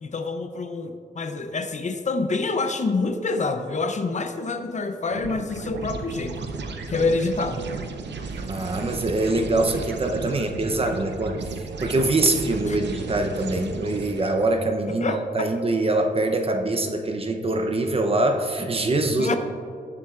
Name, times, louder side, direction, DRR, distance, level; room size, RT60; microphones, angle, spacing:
voice 1, 0.0-6.5 6.9-7.6 12.7-12.8 14.9-15.5 19.2-19.4, left 3 dB, 40° left, 7 dB, 0.6 m, -27 dB
sound 1, 5.1-14.6, right 4 dB, 85° right, 0.7 m, -34 dB
voice 2, 8.5-19.4, right 2 dB, 35° right, 5 dB, 0.7 m, -24 dB
19.5 x 7.2 x 2.4 m, 2.3 s
wide cardioid pair, 155°, 18 cm